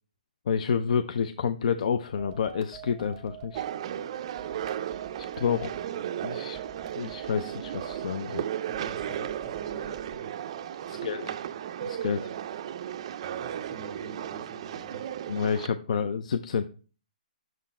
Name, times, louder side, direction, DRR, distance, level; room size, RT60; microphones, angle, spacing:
voice 1, 0.5-3.6 5.2-5.7 6.2-6.6 7.0-8.5 10.9-11.3 11.8-12.3 15.3-16.7, left 7 dB, 55° left, 11 dB, 0.4 m, -29 dB
sound 1, 2.2-3.7 4.4-5.9 6.5-8.1 8.7-10.2, right 9 dB, 15° right, 0.7 m, -46 dB
sound 2, 3.5-15.7, right 10 dB, 40° right, 0.4 m, -35 dB
voice 2, 8.7-10.3 10.8-11.4 13.4-15.1, equal, 5° left, 2 dB, 1.3 m, -48 dB
6.2 x 4.0 x 4.2 m, 0.37 s
hypercardioid pair, 160°, 5 cm